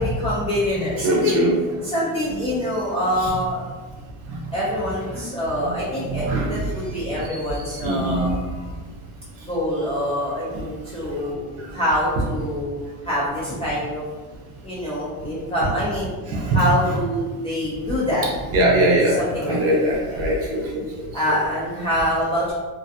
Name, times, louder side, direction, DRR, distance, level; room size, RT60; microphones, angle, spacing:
voice 1, 0.0-1.4 1.8-3.6 4.5-8.7 9.5-12.8 13.0-14.0 14.6-16.1 16.5-18.3 19.1-19.8 20.0-20.2 21.1-22.5, left 1 dB, 15° left, -9 dB, 0.3 m, -25 dB
voice 2, 1.0-1.5 5.1-5.2 5.6-5.7 6.1-6.5 7.8-8.2 16.3-16.6 18.5-19.2 19.5-20.8, right 1 dB, 40° right, -3 dB, 0.6 m, -21 dB
2.4 x 2.2 x 2.6 m, 1.3 s
cardioid pair, 160°, 38 cm